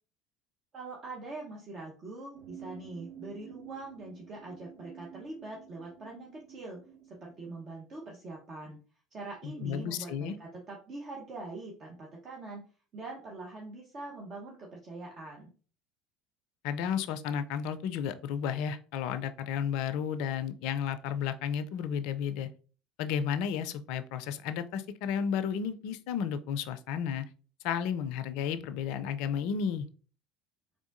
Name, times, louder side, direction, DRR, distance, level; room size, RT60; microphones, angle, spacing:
voice 1, 0.7-8.8 9.1-12.6 12.9-15.5, right 2 dB, 40° right, -2 dB, 0.9 m, -43 dB
sound 1, 2.3-7.6, right 9 dB, 65° right, 1.5 m, -51 dB
voice 2, 9.4-10.4 16.6-22.5 23.0-27.2 27.6-29.9, left 8 dB, 65° left, 12 dB, 0.4 m, -32 dB
3.6 x 3.5 x 2.5 m, 0.39 s
hypercardioid pair, 65°, 0 cm